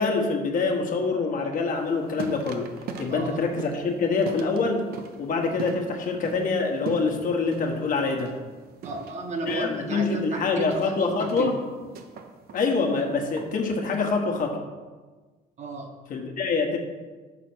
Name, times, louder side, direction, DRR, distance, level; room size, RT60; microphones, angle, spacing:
voice 1, 0.0-2.7 3.0-4.8 5.2-8.3 9.4-11.5 12.5-14.6 16.1-16.8, left 4 dB, 55° left, 2 dB, 1.1 m, -25 dB
sound 1, 1.8-14.1, right 6 dB, 65° right, 0.8 m, -41 dB
voice 2, 3.1-3.4 8.8-11.5 15.6-16.0, right 3 dB, 45° right, 3 dB, 1.1 m, -33 dB
6.0 x 4.1 x 6.0 m, 1.3 s
cardioid pair, 110°, 17 cm